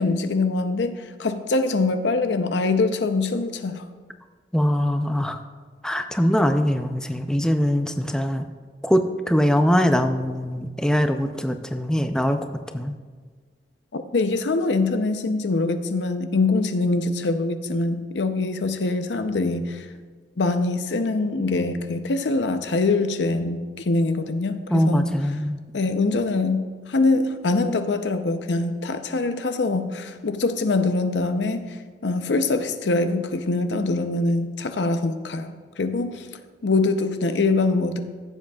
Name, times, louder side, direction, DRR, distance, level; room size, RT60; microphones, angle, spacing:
voice 1, 0.0-3.8 13.9-19.9 20.4-25.1 25.7-26.6 26.9-31.7 32.0-36.3 36.6-38.0, left 3 dB, 85° left, 8 dB, 0.6 m, -23 dB
voice 2, 4.5-5.4 5.8-8.5 8.8-12.4 12.7-12.9 24.7-25.6, equal, 5° left, 7 dB, 0.4 m, -22 dB
15.5 x 7.4 x 2.3 m, 1.5 s
head